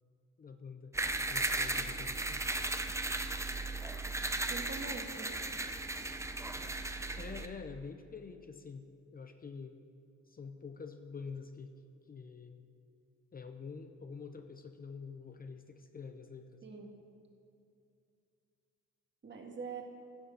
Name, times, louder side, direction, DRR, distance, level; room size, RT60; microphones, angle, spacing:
voice 1, 0.4-0.9 1.3-2.4 7.2-8.9 9.1-9.8 10.3-11.7 12.1-12.7 13.3-16.6, left 5 dB, 30° left, 7 dB, 0.6 m, -47 dB
sound 1, 0.9-7.5, right 2 dB, 10° right, 0.6 m, -36 dB
voice 2, 1.6-1.9 4.5-5.4 16.6-16.9 19.2-19.8, right 4 dB, 35° right, 2 dB, 1.8 m, -44 dB
16.0 x 6.4 x 5.5 m, 2.5 s
cardioid pair, 90°, 30 cm